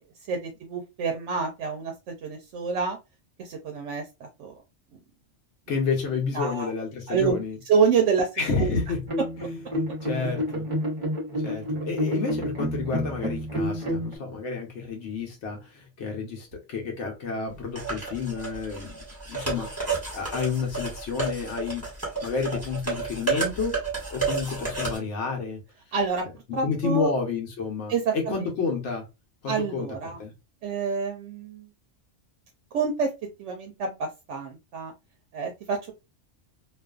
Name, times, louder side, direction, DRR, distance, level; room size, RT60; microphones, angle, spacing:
voice 1, 0.3-3.0 3.4-4.5 6.3-6.7 7.1-7.4 7.7-8.3 8.6-8.7 25.9-26.2 26.5-27.1 27.9-28.4 29.5-30.2 30.6-31.7 32.7-33.1 33.4-34.9 35.3-35.9, right 5 dB, 75° right, 0.9 m, -27 dB
voice 2, 5.7-7.6 8.4-9.0 9.4-9.6 10.0-10.7 11.4-19.0 19.3-19.7 20.1-21.9 22.2-23.8 24.1-25.6 26.5-29.1 29.4-30.3, left 5 dB, 70° left, 1.0 m, -30 dB
sound 1, 9.1-14.2, equal, 35° right, 0.6 m, -29 dB
sound 2, 17.8-25.0, right 4 dB, 15° right, 1.1 m, -31 dB
2.4 x 2.4 x 2.3 m
omnidirectional pair, 1.3 m